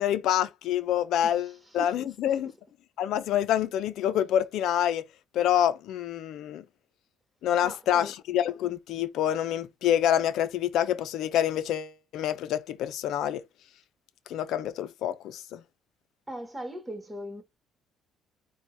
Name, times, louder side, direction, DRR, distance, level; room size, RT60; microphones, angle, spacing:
voice 1, 0.0-2.5 3.0-5.0 5.3-6.6 7.4-13.4 14.3-15.6, left 10 dB, 75° left, 0.6 m, -27 dB
voice 2, 1.2-2.5 7.6-8.1 16.3-17.4, right 1 dB, 10° right, 1.6 m, -40 dB
4.4 x 2.4 x 4.6 m
cardioid pair, 90°, 0 cm